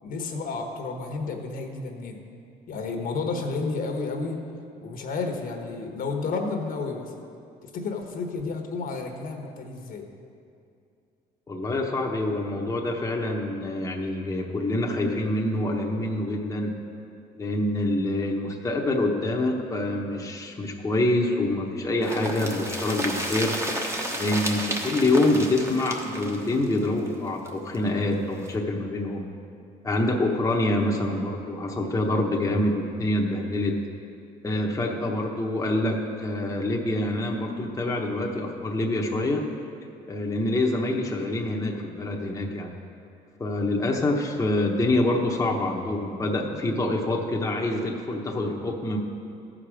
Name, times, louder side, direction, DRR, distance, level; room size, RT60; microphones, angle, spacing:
voice 1, 0.0-2.2 2.7-4.4 4.8-7.1 7.6-10.1, left 4 dB, 60° left, 3 dB, 1.2 m, -31 dB
voice 2, 11.5-16.7 17.3-23.5 24.1-29.3 29.8-33.8 34.4-39.4 40.1-42.7 43.4-49.0, left 1 dB, 20° left, -1 dB, 1.0 m, -26 dB
sound 1, 22.0-27.8 28.1-28.2 28.4-28.5, right 1 dB, 15° right, 1.1 m, -32 dB
14.0 x 5.0 x 6.2 m, 2.5 s
cardioid pair, 110°, 17 cm